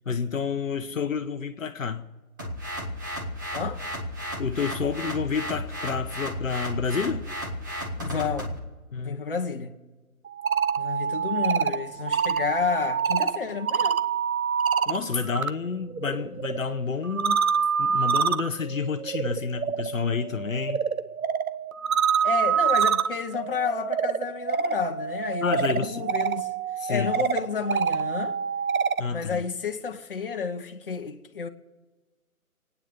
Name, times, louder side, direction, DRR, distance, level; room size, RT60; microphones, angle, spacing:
voice 1, 0.1-2.1 4.4-7.3 8.9-9.2 14.9-17.4 17.8-20.8 25.4-26.1 26.8-27.1 29.0-29.4, left 5 dB, 60° left, 1.1 m, -29 dB
sound 1, 2.4-8.6, equal, 15° right, 1.2 m, -33 dB
voice 2, 8.0-8.5 9.0-9.8 10.8-14.0 22.2-26.5 26.9-28.4 29.1-31.5, left 5 dB, 40° left, 1.2 m, -30 dB
sound 2, 10.3-15.5 15.8-29.1, right 7 dB, 70° right, 1.0 m, -27 dB
25.5 x 9.6 x 5.4 m
hypercardioid pair, 170°, 44 cm